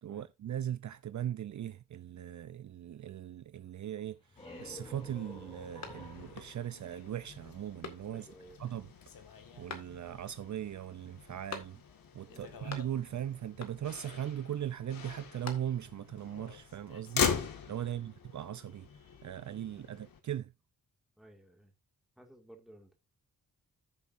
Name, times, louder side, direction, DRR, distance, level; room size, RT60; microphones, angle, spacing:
voice 1, 0.0-4.2 4.6-8.3 8.6-8.9 9.6-11.8 12.1-17.4 17.7-18.9 19.2-20.5, right 10 dB, 55° right, 0.6 m, -39 dB
sound 1, 4.0-7.7, left 1 dB, 15° left, 3.0 m, -51 dB
Motor vehicle (road), 4.4-20.2, left 7 dB, 70° left, 1.8 m, -41 dB
sound 2, 5.8-6.5 6.9-7.0 7.8-8.4 9.7-10.3 11.5-12.1 12.4-13.2 13.6-14.1 15.1-16.0, left 4 dB, 50° left, 2.0 m, -47 dB
voice 2, 8.1-8.6 12.3-12.6 17.8-18.0 21.2-21.7 22.2-23.0, right 1 dB, ahead, 2.0 m, -57 dB
14.0 x 7.2 x 2.6 m
wide cardioid pair, 170°, 35 cm